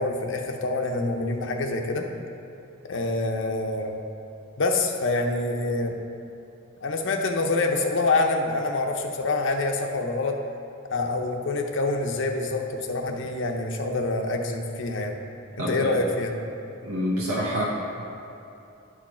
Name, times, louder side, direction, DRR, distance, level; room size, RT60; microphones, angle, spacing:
voice 1, 0.0-2.1 2.8-4.0 4.6-6.0 6.8-10.4 10.9-15.2 15.6-16.3, left 2 dB, 60° left, 3 dB, 0.7 m, -26 dB
voice 2, 15.6-15.9 16.8-17.6, equal, 85° right, -5 dB, 1.0 m, -27 dB
10.5 x 4.9 x 4.3 m, 2.8 s
head